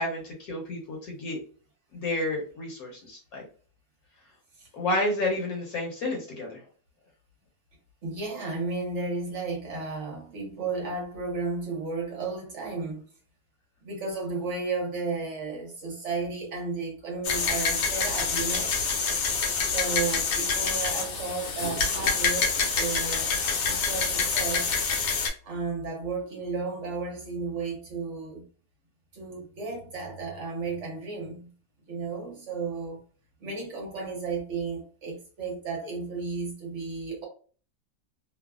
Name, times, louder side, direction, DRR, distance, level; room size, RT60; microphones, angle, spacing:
voice 1, 0.0-1.4 1.9-3.5 4.7-6.6, left 1 dB, 60° left, 1.2 m, -30 dB
voice 2, 8.0-13.0 13.8-18.8 19.6-23.3 23.7-24.8 25.4-28.4 29.1-31.5 31.9-33.0 33.4-37.3, right 4 dB, 50° right, 1.0 m, -33 dB
sound 1, 17.2-25.3, left 5 dB, 85° left, 1.4 m, -27 dB
3.1 x 2.2 x 2.3 m
omnidirectional pair, 1.9 m